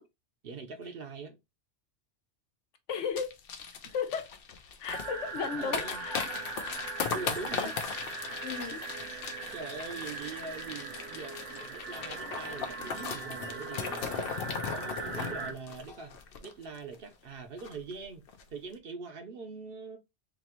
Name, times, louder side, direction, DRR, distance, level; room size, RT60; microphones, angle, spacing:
voice 1, 0.4-1.4 5.5-6.0 7.1-7.8 9.3-16.2 16.4-18.2 18.5-20.0, right 4 dB, 55° right, 0.9 m, -43 dB
voice 2, 2.9-3.4 3.9-4.3 4.8-6.2 7.1-7.3 7.6-7.7 8.4-8.8, left 6 dB, 80° left, 1.1 m, -35 dB
sound 1, 3.2-17.0 17.2-17.3 17.6-17.9 18.3-18.4, left 6 dB, 60° left, 0.7 m, -38 dB
sound 2, 4.9-15.5, right 4 dB, 85° right, 1.1 m, -40 dB
4.0 x 2.9 x 3.0 m
omnidirectional pair, 1.2 m